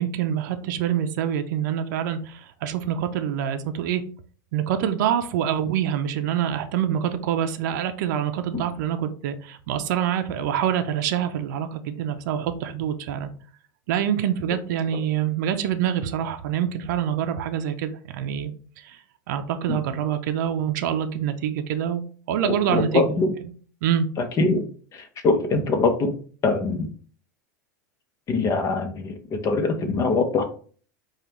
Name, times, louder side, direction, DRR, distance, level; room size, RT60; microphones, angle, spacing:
voice 1, 0.0-4.0 4.5-13.3 13.9-18.5 18.8-19.0 19.3-23.0 23.8-24.1, right 9 dB, 70° right, 8 dB, 0.5 m, -26 dB
voice 2, 22.4-23.3 24.4-24.6 24.9-26.1 26.4-26.9 28.3-30.4, left 3 dB, 35° left, 6 dB, 0.9 m, -23 dB
5.0 x 2.4 x 3.0 m, 0.43 s
supercardioid pair, 115°, 10 cm